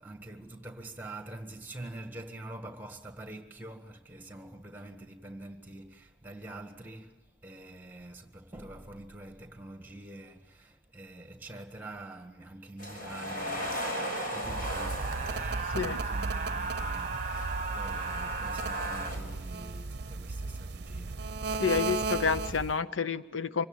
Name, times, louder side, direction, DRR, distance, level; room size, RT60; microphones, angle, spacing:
voice 1, 0.0-7.2 7.4-21.3, right 1 dB, 10° right, 1.7 m, -46 dB
sound 1, 12.8-16.1 17.0-19.2, equal, 45° left, 6.2 m, -38 dB
sound 2, 13.8-19.1, right 4 dB, 35° right, 1.1 m, -36 dB
sound 3, 14.4-22.8, right 3 dB, 55° right, 0.7 m, -36 dB
voice 2, 21.6-23.6, left 5 dB, 90° left, 0.7 m, -29 dB
25.0 x 17.0 x 9.1 m
head